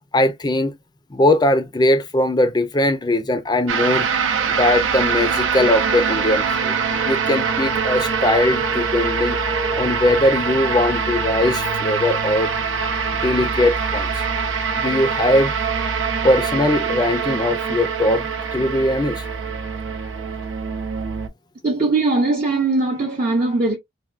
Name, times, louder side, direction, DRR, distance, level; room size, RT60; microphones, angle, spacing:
voice 1, 0.1-0.7 1.1-4.1 4.6-6.8 7.0-9.4 9.8-12.5 13.2-14.2 14.8-15.5 16.2-18.3 18.5-19.2, left 1 dB, 20° left, 0.4 m, -20 dB
sound 1, 3.7-21.3, right 5 dB, 85° right, 0.6 m, -23 dB
voice 2, 21.6-23.8, right 3 dB, 45° right, 0.6 m, -20 dB
3.4 x 2.2 x 2.4 m
head